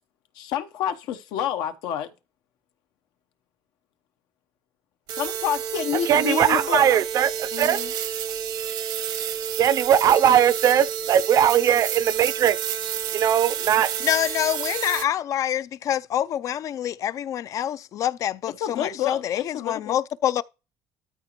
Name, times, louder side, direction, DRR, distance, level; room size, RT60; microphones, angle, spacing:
voice 1, 0.3-2.1 5.1-6.9 7.5-7.9 18.6-20.0, left 10 dB, 80° left, 0.9 m, -28 dB
sound 1, 5.1-15.0, right 9 dB, 70° right, 0.8 m, -30 dB
voice 2, 6.1-7.8 9.6-12.6 13.1-13.9, right 9 dB, 50° right, 0.5 m, -19 dB
voice 3, 14.0-20.4, left 11 dB, 50° left, 0.4 m, -26 dB
13.0 x 4.9 x 3.0 m
cardioid pair, 130°, 7 cm